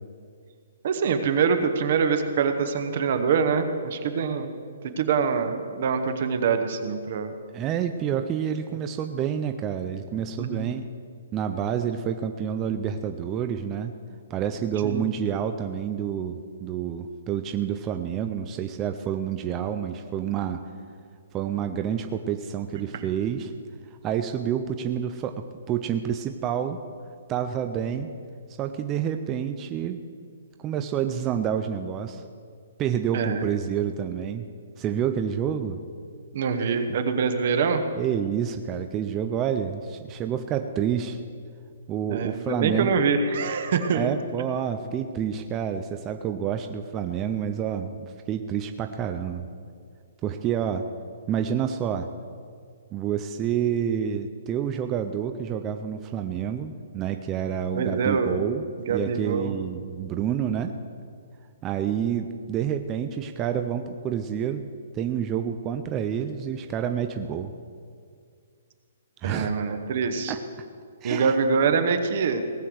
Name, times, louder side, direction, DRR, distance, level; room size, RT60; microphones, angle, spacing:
voice 1, 0.8-4.5 5.0-7.3 8.7-8.8 10.4-10.7 14.8-15.1 22.9-23.1 33.1-33.4 36.3-37.8 42.1-44.1 57.8-58.4 58.9-59.5 69.2-70.3 71.0-72.4, right 5 dB, 35° right, 7 dB, 1.0 m, -24 dB
voice 2, 7.5-10.9 11.3-13.9 14.3-20.6 21.3-23.5 24.0-26.8 27.3-28.1 28.6-30.0 30.6-32.2 32.8-34.5 34.8-35.8 36.5-37.0 37.9-41.2 41.9-42.9 43.9-49.5 50.2-50.9 51.3-52.1 52.9-60.7 61.6-64.6 64.9-67.5 69.2-69.5 70.3-70.7 71.0-71.4, right 8 dB, 15° right, 6 dB, 0.4 m, -28 dB
18.0 x 6.6 x 7.8 m, 2.1 s
hypercardioid pair, 180°, 0 cm